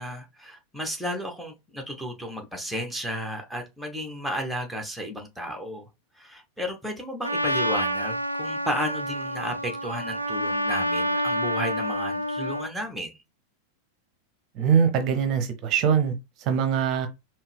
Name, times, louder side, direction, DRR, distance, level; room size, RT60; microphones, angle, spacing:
voice 1, 0.0-5.9 6.1-13.2, equal, ahead, 1.1 m, -33 dB
Trumpet, 7.2-12.7, equal, 85° right, 0.4 m, -28 dB
voice 2, 14.6-16.1 16.4-17.1, right 7 dB, 40° right, 0.8 m, -22 dB
4.6 x 2.9 x 3.4 m
figure-of-eight pair, 90°, 0 cm